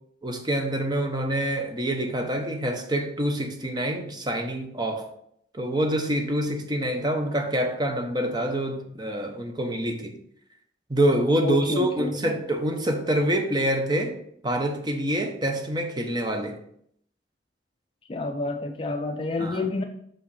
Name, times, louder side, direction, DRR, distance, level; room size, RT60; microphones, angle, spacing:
voice 1, 0.2-5.1 5.5-10.2 10.9-14.2 14.4-16.6 19.4-19.7, right 1 dB, 25° right, 4 dB, 0.9 m, -26 dB
voice 2, 11.4-12.4 18.1-19.8, left 2 dB, 30° left, 4 dB, 0.4 m, -29 dB
6.3 x 5.0 x 4.2 m, 0.69 s
head